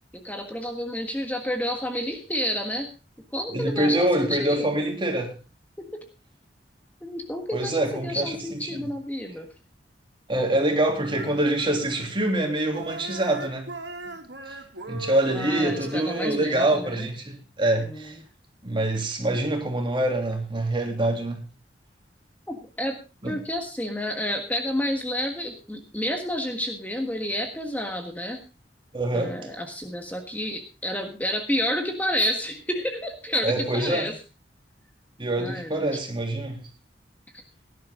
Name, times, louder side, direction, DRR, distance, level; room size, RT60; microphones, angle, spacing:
voice 1, 0.1-2.9 3.3-4.8 5.8-6.0 7.0-9.5 15.3-17.1 17.8-18.1 22.5-28.4 29.1-34.1 35.4-36.0, equal, 10° left, 1.5 m, -30 dB
voice 2, 3.5-5.3 7.5-8.9 10.3-13.7 14.9-18.2 18.6-21.4 23.2-23.4 28.9-29.4 33.4-34.1 35.2-36.6, right 1 dB, 30° right, 3.2 m, -25 dB
sound 1, 11.0-12.4 12.7-16.3, right 2 dB, 85° right, 3.1 m, -39 dB
18.0 x 11.0 x 3.8 m
head